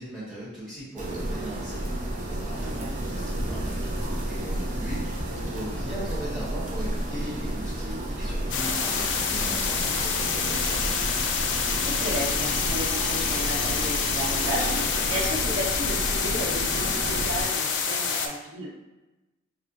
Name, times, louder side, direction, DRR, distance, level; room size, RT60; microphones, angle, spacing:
voice 1, 0.0-1.8 2.3-3.9 4.2-5.0 5.3-11.0, right 1 dB, 5° left, -11 dB, 1.4 m, -38 dB
sound 1, 1.0-17.5, right 1 dB, 40° right, 0.6 m, -32 dB
voice 2, 2.6-3.0 7.8-8.1 11.5-18.7, equal, 90° right, -5 dB, 0.9 m, -33 dB
sound 2, 8.5-18.3, left 6 dB, 65° left, 0.4 m, -27 dB
4.3 x 2.4 x 2.5 m, 1.1 s
head